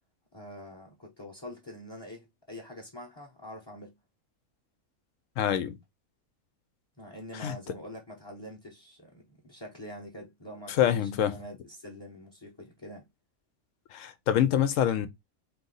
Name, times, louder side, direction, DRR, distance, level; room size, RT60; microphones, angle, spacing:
voice 1, 0.3-4.0 7.0-13.1, equal, 20° left, 0.8 m, -45 dB
voice 2, 5.4-5.8 7.3-7.5 10.8-11.4 13.9-15.1, left 10 dB, 70° left, 0.9 m, -26 dB
4.3 x 2.7 x 3.9 m
omnidirectional pair, 1.5 m